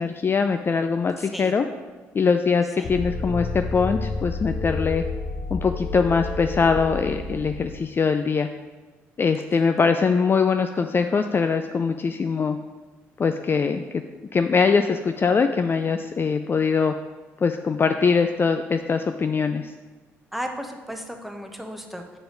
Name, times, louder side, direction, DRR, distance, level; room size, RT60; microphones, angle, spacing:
voice 1, 0.0-1.7 2.1-5.0 5.5-8.5 9.2-12.6 13.2-14.0 14.3-16.9 17.4-19.7, left 5 dB, 30° left, 7 dB, 0.4 m, -22 dB
sound 1, 2.8-7.8, left 3 dB, 55° left, 0.9 m, -30 dB
voice 2, 20.3-22.2, equal, ahead, 3 dB, 1.0 m, -34 dB
7.8 x 4.8 x 3.9 m, 1.3 s
hypercardioid pair, 50°, 7 cm